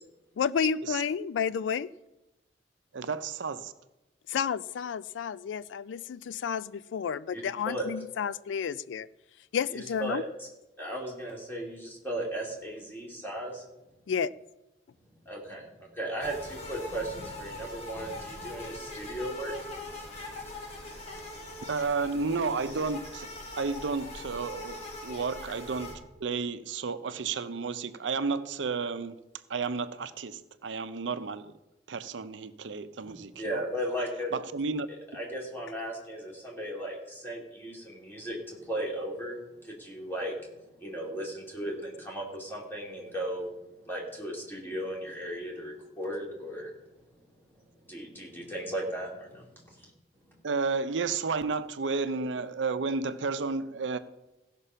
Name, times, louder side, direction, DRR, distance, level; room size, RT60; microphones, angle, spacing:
voice 1, 0.4-1.9 4.3-9.1 9.5-10.2 14.1-14.3, left 7 dB, 85° left, 0.3 m, -31 dB
voice 2, 2.9-3.7 21.6-29.2 29.5-31.5 31.9-33.6 34.3-34.9 50.4-54.0, right 4 dB, 85° right, 0.6 m, -32 dB
voice 3, 7.3-7.9 9.7-10.5 10.8-13.6 15.3-19.6 20.0-20.4 33.0-34.3 35.1-46.7 47.9-49.9, right 1 dB, 10° left, 2.6 m, -36 dB
sound 1, 16.2-26.0, left 2 dB, 35° left, 2.2 m, -42 dB
15.5 x 6.0 x 5.6 m
head